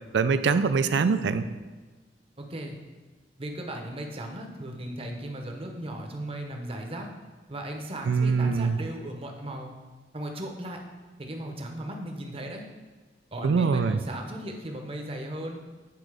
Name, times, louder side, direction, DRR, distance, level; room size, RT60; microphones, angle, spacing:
voice 1, 0.1-1.5 8.1-8.8 13.4-14.0, right 5 dB, 75° right, 12 dB, 0.4 m, -23 dB
voice 2, 2.4-2.8 3.4-7.1 7.5-9.7 10.1-10.8 11.2-12.6 13.3-15.6, right 1 dB, 35° right, 2 dB, 0.8 m, -36 dB
8.7 x 3.9 x 4.8 m, 1.3 s
head